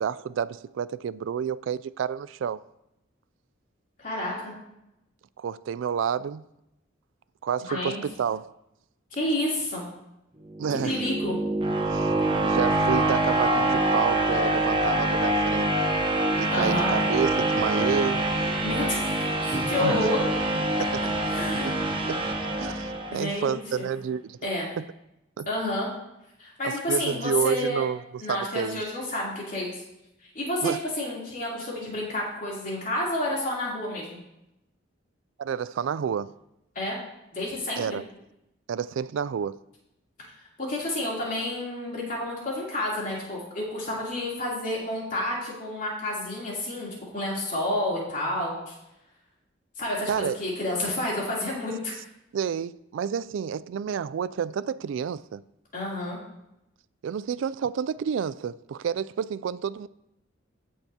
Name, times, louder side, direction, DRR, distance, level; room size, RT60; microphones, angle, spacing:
voice 1, 0.0-2.6 5.4-6.4 7.4-8.5 10.6-11.0 11.9-12.1 12.4-15.7 16.4-18.2 19.8-20.1 20.8-21.0 21.5-21.7 22.1-22.2 22.6-24.4 24.8-24.9 25.4-25.5 26.6-28.8 30.6-30.8 35.4-36.3 37.8-38.0 38.7-39.6 50.1-50.4 52.3-55.4 57.0-59.9, right 7 dB, 75° right, 0.3 m, -29 dB
voice 2, 4.0-4.5 7.7-8.0 9.1-9.8 10.8-11.4 16.5-16.9 18.6-20.2 21.2-21.7 23.1-23.9 24.4-24.7 25.5-25.9 26.4-27.8 28.2-29.8 30.3-34.2 36.7-37.0 37.3-38.0 40.6-48.7 49.8-52.0 55.7-56.2, left 1 dB, 45° left, 3.2 m, -30 dB
sound 1, 10.5-23.5, right 1 dB, 25° right, 0.9 m, -25 dB
15.5 x 6.6 x 2.8 m
head